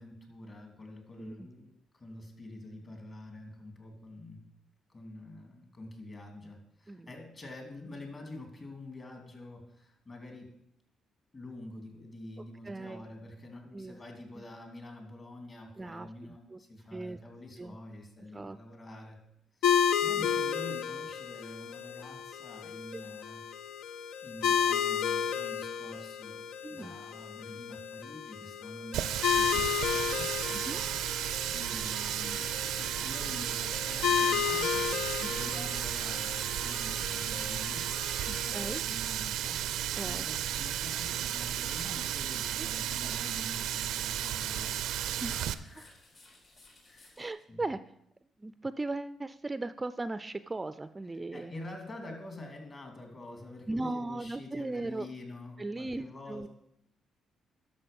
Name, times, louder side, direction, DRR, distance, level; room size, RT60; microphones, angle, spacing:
voice 1, 0.0-4.4 4.9-10.5 11.3-19.2 19.6-23.4 24.2-30.3 31.5-35.0 35.3-37.8 38.3-46.2 46.8-47.2 47.5-47.6 51.1-56.5, left 2 dB, 40° left, 2 dB, 2.9 m, -47 dB
voice 2, 1.2-1.5 6.9-7.1 12.6-13.1 13.7-14.0 14.3-14.4 15.8-16.6 16.9-17.2 17.6-17.8 18.3-18.6 20.2-20.3 22.9-23.0 26.6-27.0 30.5-30.8 35.2-35.3 35.5-35.7 38.3-38.8 40.0-40.3 42.6-42.7 45.2-45.7 47.2-47.8 48.4-51.5 53.7-55.1 55.6-56.5, right 2 dB, 20° right, 13 dB, 0.4 m, -38 dB
sound 1, 19.6-38.8, left 8 dB, 85° left, 0.5 m, -33 dB
Water tap faucet, 28.9-45.5, right 11 dB, 85° right, 0.4 m, -34 dB
sound 2, 34.7-47.3, left 2 dB, 60° left, 3.7 m, -60 dB
11.5 x 6.8 x 5.3 m, 0.75 s
cardioid pair, 90°, 0 cm